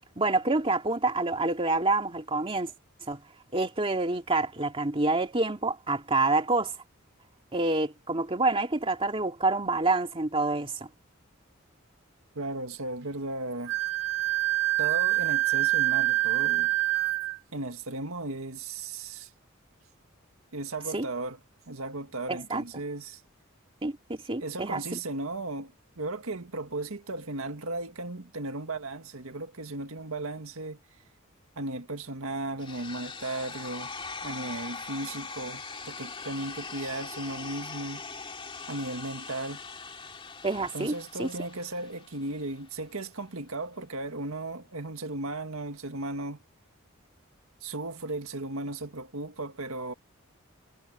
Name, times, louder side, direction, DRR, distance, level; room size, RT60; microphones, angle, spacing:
voice 1, 0.2-2.7 3.1-3.2 3.5-6.7 7.5-10.9 20.9-21.1 22.3-22.6 23.8-24.8 40.4-41.3, right 2 dB, 25° right, 2.4 m, -27 dB
voice 2, 12.4-13.8 14.8-16.7 17.5-19.3 20.5-21.4 21.7-23.2 24.4-30.8 31.6-33.9 34.2-38.0 38.7-39.6 40.7-46.4 47.6-49.9, right 2 dB, 85° right, 1.9 m, -36 dB
Wind instrument woodwind instrument, 13.7-17.4, right 17 dB, 65° right, 4.1 m, -26 dB
sound 1, 32.6-42.6, left 4 dB, 25° left, 2.5 m, -41 dB
head